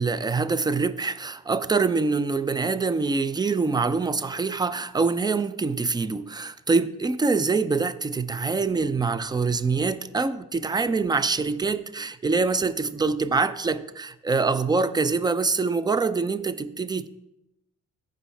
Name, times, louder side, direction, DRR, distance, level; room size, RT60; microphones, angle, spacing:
voice 1, 0.0-17.1, right 4 dB, 15° right, 0.4 m, -25 dB
14.0 x 5.3 x 3.3 m
cardioid pair, 90°, 30 cm